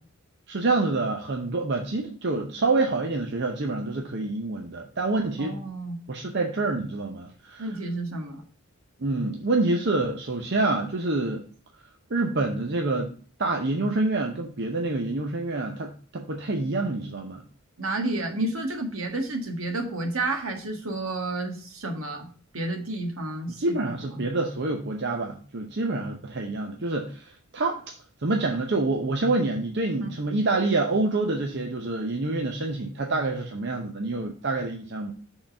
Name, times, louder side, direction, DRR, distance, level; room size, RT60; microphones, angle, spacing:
voice 1, 0.5-5.6 6.1-7.7 9.0-11.5 12.1-13.1 13.4-17.4 23.6-27.8 28.2-35.1, right 2 dB, 50° right, 3 dB, 0.7 m, -27 dB
voice 2, 5.4-6.0 7.6-8.4 17.8-23.8 30.0-30.1, right 2 dB, 75° right, 4 dB, 1.5 m, -31 dB
6.5 x 3.9 x 5.8 m, 0.43 s
head